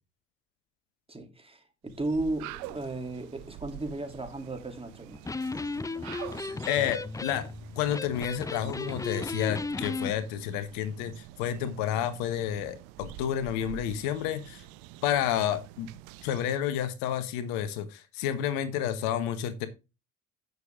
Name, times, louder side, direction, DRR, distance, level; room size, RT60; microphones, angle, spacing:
voice 1, 1.1-5.2, right 2 dB, 15° right, 3.0 m, -35 dB
sound 1, 1.9-16.7, right 14 dB, 80° right, 0.8 m, -47 dB
Electric guitar, 5.1-10.1, left 3 dB, 10° left, 0.5 m, -35 dB
voice 2, 6.7-7.5 7.7-14.6 15.0-15.9 16.2-19.7, left 10 dB, 75° left, 1.3 m, -30 dB
9.5 x 6.8 x 3.6 m
hypercardioid pair, 60°, 33 cm